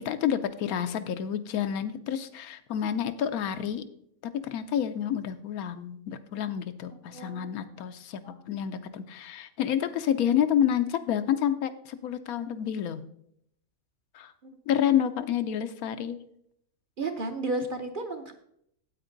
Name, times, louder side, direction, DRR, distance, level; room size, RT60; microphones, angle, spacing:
voice 1, 0.0-3.8 4.3-8.2 8.5-13.0 14.1-14.3 14.7-16.2, left 9 dB, 85° left, 11 dB, 1.1 m, -29 dB
voice 2, 7.1-7.7 8.2-8.4 14.4-14.5 17.0-18.3, right 2 dB, 45° right, 6 dB, 0.8 m, -33 dB
8.9 x 8.3 x 3.9 m, 0.71 s
omnidirectional pair, 1.5 m